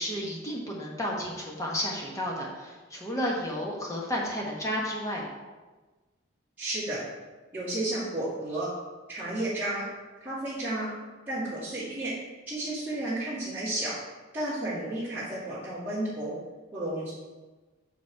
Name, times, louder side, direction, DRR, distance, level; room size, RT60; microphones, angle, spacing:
voice 1, 0.0-5.3, equal, 15° left, -2 dB, 1.2 m, -32 dB
voice 2, 6.6-7.0 7.5-8.7 9.1-9.9 10.2-10.9 11.3-12.1 12.5-14.0 14.3-16.3 16.7-17.1, right 1 dB, 10° right, -15 dB, 2.3 m, -32 dB
6.0 x 5.2 x 4.7 m, 1.2 s
head